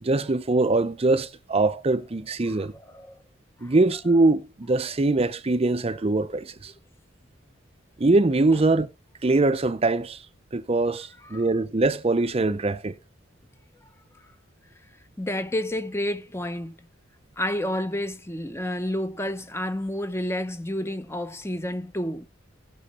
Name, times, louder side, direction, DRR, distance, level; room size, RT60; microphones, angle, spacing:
voice 1, 0.0-2.7 3.6-6.7 8.0-8.9 9.2-10.2 10.5-12.9, right 2 dB, 30° right, 0.6 m, -22 dB
voice 2, 2.5-3.2 3.6-3.7 11.3-11.5 15.2-16.8 17.4-22.3, left 1 dB, 15° left, 0.9 m, -30 dB
18.0 x 6.2 x 4.2 m
head